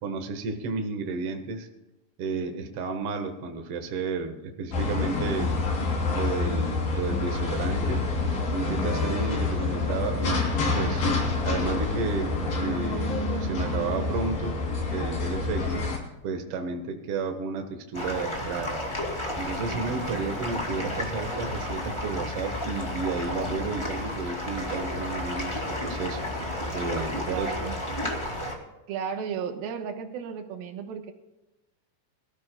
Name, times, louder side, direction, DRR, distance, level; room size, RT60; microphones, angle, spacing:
voice 1, 0.0-1.7 2.2-5.6 6.1-8.1 8.5-10.5 10.8-11.0 11.4-14.6 14.9-15.9 16.2-18.8 19.4-26.3 26.7-27.5, right 4 dB, 50° right, 5 dB, 1.9 m, -32 dB
sound 1, 4.7-16.0, left 3 dB, 75° left, 5.2 m, -27 dB
sound 2, 17.9-28.5, left 1 dB, 10° left, 1.9 m, -32 dB
voice 2, 19.7-20.3 27.3-27.8 28.9-31.1, right 7 dB, 85° right, 5 dB, 3.0 m, -35 dB
22.5 x 14.0 x 2.3 m, 1.0 s
omnidirectional pair, 4.1 m